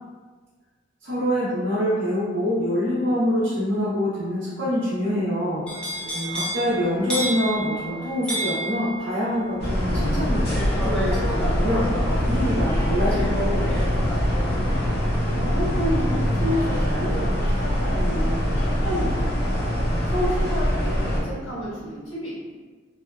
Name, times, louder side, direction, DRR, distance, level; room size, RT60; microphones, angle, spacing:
voice 1, 1.0-5.7 6.3-13.8, left 1 dB, 60° right, -10 dB, 0.6 m, -25 dB
sound 1, 5.7-17.6 18.0-18.4, right 1 dB, 5° left, 0.3 m, -33 dB
voice 2, 6.0-6.3 7.0-7.1 15.2-19.7 20.1-22.3, equal, 85° left, -9 dB, 1.3 m, -30 dB
sound 2, 9.6-21.2, equal, 50° left, 0.6 m, -23 dB
2.7 x 2.3 x 2.3 m, 1.4 s
head